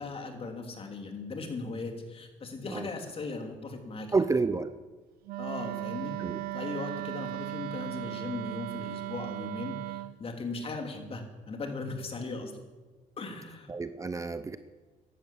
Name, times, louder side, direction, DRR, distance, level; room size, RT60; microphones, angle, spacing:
voice 1, 0.0-4.1 5.4-6.2 6.5-12.5 13.2-13.7, left 3 dB, 40° left, 4 dB, 3.1 m, -38 dB
voice 2, 4.1-4.7 6.2-6.4 13.7-14.6, right 4 dB, 20° right, 12 dB, 0.7 m, -29 dB
Wind instrument woodwind instrument, 5.3-10.1, right 16 dB, 90° right, 0.7 m, -37 dB
15.0 x 12.0 x 7.4 m, 1.3 s
cardioid pair, 100°, 15 cm